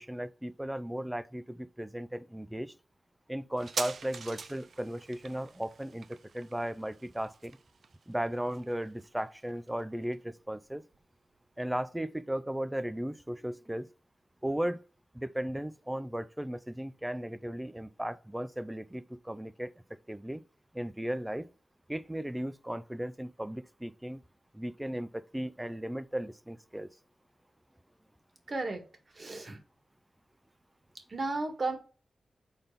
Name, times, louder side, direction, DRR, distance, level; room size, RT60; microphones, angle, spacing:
voice 1, 0.0-2.7 3.3-7.6 8.1-10.8 11.6-13.9 14.4-14.8 15.1-19.7 20.1-20.4 20.7-21.5 21.9-24.2 24.5-26.9, right 1 dB, 10° right, 0.4 m, -36 dB
sound 1, 3.6-10.7 10.9-11.0, right 5 dB, 65° right, 0.5 m, -44 dB
voice 2, 28.5-28.8 29.1-29.6 31.1-31.8, right 3 dB, 45° right, 1.7 m, -33 dB
5.1 x 4.0 x 5.6 m
wide cardioid pair, 100°, 0 cm